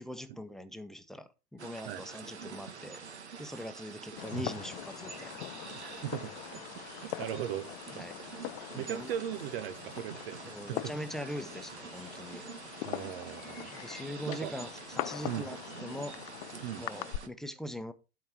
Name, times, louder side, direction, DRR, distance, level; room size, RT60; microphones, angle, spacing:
voice 1, 0.0-3.0 3.4-5.4 7.9-8.2 8.7-9.1 10.5-12.4 13.7-16.2 16.8-17.9, equal, ahead, 1.0 m, -42 dB
sound 1, 1.6-17.3, right 5 dB, 80° right, 1.5 m, -46 dB
Fireworks, 4.2-17.2, left 20 dB, 50° left, 0.5 m, -43 dB
voice 2, 5.7-6.6 7.0-7.7 8.0-8.1 8.6-10.8 11.2-11.3 12.8-13.7 14.3-14.5 15.2-15.5 16.6-16.9, right 11 dB, 60° right, 0.9 m, -38 dB
12.5 x 4.9 x 4.5 m
hypercardioid pair, 90°, 33 cm